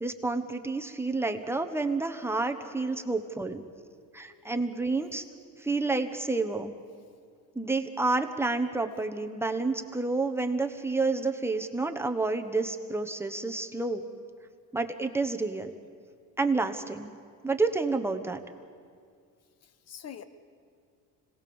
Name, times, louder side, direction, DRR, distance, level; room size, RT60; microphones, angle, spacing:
voice 1, 0.0-3.6 4.1-5.2 5.6-6.7 7.5-14.0 14.7-15.7 16.4-17.1 17.4-18.4, right 3 dB, 5° right, 5 dB, 1.1 m, -29 dB
voice 2, 2.8-4.0 4.2-4.8 19.6-20.2, left 8 dB, 45° left, 12 dB, 1.2 m, -49 dB
26.0 x 18.0 x 7.1 m, 2.2 s
cardioid pair, 135°, 36 cm